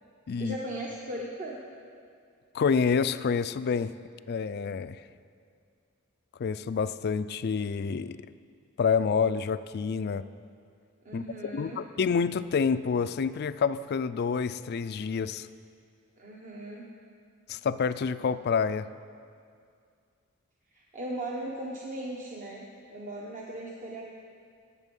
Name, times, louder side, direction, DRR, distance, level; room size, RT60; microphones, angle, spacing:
voice 1, 0.4-1.6 11.0-11.8 16.2-16.9 20.7-24.1, right 1 dB, 35° right, -3 dB, 1.0 m, -38 dB
voice 2, 2.5-3.9 4.3-5.0 6.4-8.2 8.8-10.2 11.1-11.2 11.5-15.5 17.5-18.9, left 5 dB, 50° left, 14 dB, 0.3 m, -28 dB
17.5 x 7.2 x 5.3 m, 2.3 s
head